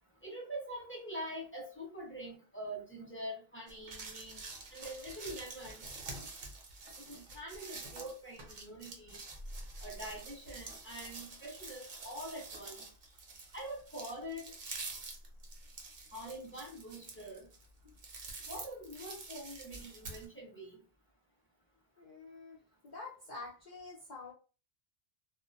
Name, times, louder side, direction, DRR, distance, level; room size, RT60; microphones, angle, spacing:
voice 1, 0.2-4.4 4.7-5.9 7.0-9.2 9.8-12.8 13.5-14.5 16.1-17.5 18.5-20.8, right 1 dB, 15° left, -3 dB, 0.6 m, -44 dB
sound 1, 3.7-20.3, right 3 dB, 50° right, 0.7 m, -47 dB
voice 2, 22.0-24.3, left 3 dB, 55° left, -3 dB, 0.6 m, -48 dB
2.3 x 2.1 x 2.6 m, 0.34 s
omnidirectional pair, 1.1 m